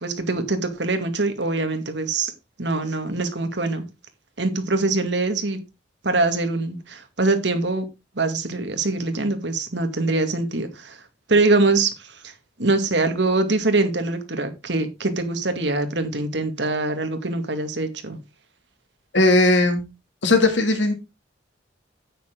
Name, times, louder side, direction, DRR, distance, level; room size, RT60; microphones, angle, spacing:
voice 1, 0.0-2.3 2.6-3.8 4.4-5.6 6.0-7.9 8.2-11.0 11.3-12.3 12.6-18.2, right 2 dB, 65° right, 2.3 m, -23 dB
voice 2, 19.1-19.8 20.2-20.9, left 2 dB, 70° left, 2.8 m, -17 dB
9.5 x 9.3 x 3.9 m
head